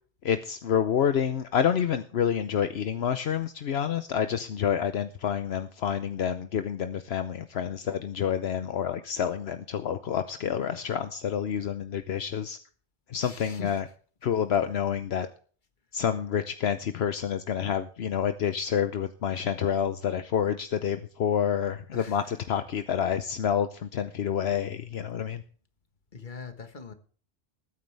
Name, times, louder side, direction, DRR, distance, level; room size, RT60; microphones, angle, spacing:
voice 1, 0.2-12.6 13.1-13.8 14.2-15.3 15.9-25.4, left 8 dB, 75° left, 1.0 m, -28 dB
voice 2, 13.2-13.8 21.9-22.2 26.1-26.9, left 6 dB, 50° left, 1.6 m, -42 dB
21.0 x 9.4 x 3.3 m
omnidirectional pair, 1.1 m